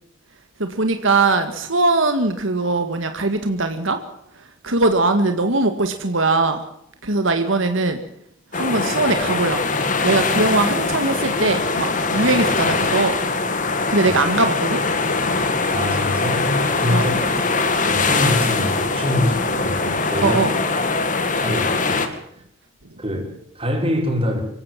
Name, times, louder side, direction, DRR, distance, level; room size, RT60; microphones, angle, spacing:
voice 1, 0.6-4.0 4.3-6.6 7.0-8.0 8.5-9.7 10.0-13.2 13.5-14.8 16.9-18.0 19.1-19.8 20.2-20.5 22.9-23.0, right 3 dB, 80° right, 7 dB, 1.9 m, -21 dB
sound 1, 8.5-22.1, left 3 dB, 40° left, 2.4 m, -22 dB
voice 2, 15.7-17.1 17.8-20.4 21.4-22.1 23.0-24.4, left 1 dB, 30° right, 2 dB, 5.5 m, -24 dB
25.5 x 16.0 x 7.5 m, 0.75 s
head